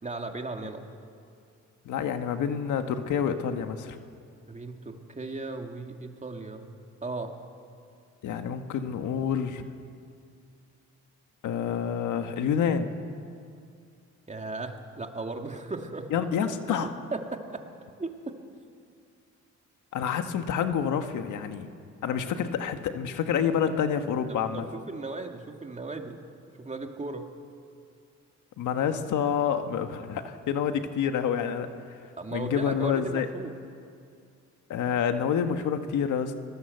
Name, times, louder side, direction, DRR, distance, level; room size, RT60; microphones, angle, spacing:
voice 1, 0.0-0.8 4.5-6.7 7.0-7.4 14.3-16.1 16.8-17.6 18.0-18.4 24.3-26.2 26.6-27.3 32.2-33.5, right 3 dB, 25° right, 4 dB, 2.4 m, -36 dB
voice 2, 1.8-4.0 8.2-9.6 11.4-12.9 16.1-16.9 19.9-21.7 22.0-24.7 28.6-31.7 32.3-33.3 34.7-36.3, left 7 dB, 80° left, 7 dB, 1.6 m, -28 dB
25.0 x 19.0 x 8.0 m, 2.4 s
cardioid pair, 90°, 30 cm